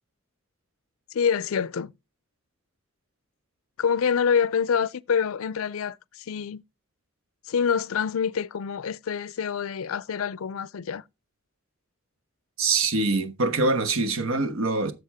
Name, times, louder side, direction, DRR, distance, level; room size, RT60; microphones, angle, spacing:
voice 1, 1.1-1.9 3.8-6.6 7.5-11.0, left 7 dB, 75° left, 0.4 m, -26 dB
voice 2, 12.6-14.9, right 3 dB, 70° right, 1.2 m, -24 dB
11.0 x 7.1 x 3.4 m
head